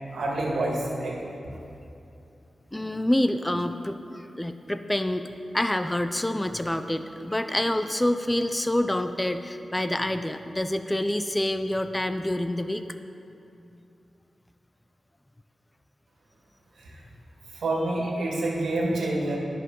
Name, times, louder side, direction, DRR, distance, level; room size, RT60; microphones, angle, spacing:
voice 1, 0.1-1.2 16.8-17.0 17.5-19.4, right 2 dB, 80° right, -3 dB, 2.0 m, -27 dB
voice 2, 2.7-12.8, left 1 dB, 15° left, 9 dB, 0.6 m, -27 dB
19.0 x 6.9 x 3.9 m, 2.7 s
cardioid pair, 40°, 0 cm